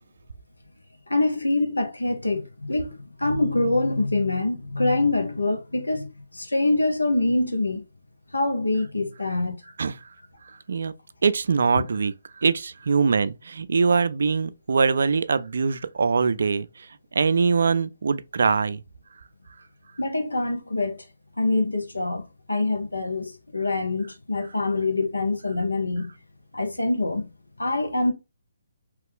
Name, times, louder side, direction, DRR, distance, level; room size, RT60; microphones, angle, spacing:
voice 1, 1.1-7.8 8.3-9.6 11.7-11.9 20.0-21.0 21.4-26.1 26.5-27.3 27.6-28.1, left 2 dB, 85° left, 0.9 m, -25 dB
voice 2, 11.2-16.9 17.1-18.8, right 5 dB, 60° right, 0.3 m, -23 dB
2.9 x 2.4 x 3.5 m
figure-of-eight pair, 140°, 0 cm